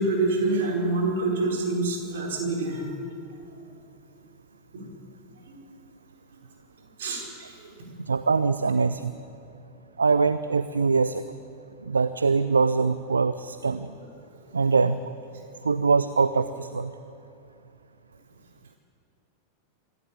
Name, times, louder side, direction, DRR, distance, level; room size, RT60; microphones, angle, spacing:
voice 1, 0.0-2.8 4.7-4.8 5.5-5.6 7.0-7.7, right 2 dB, 60° right, 0 dB, 4.6 m, -26 dB
voice 2, 8.0-9.1 10.0-11.3 11.9-13.9 14.5-15.1 15.6-16.9, right 4 dB, 75° right, 14 dB, 0.5 m, -23 dB
25.5 x 12.0 x 8.7 m, 2.7 s
figure-of-eight pair, 90°, 0 cm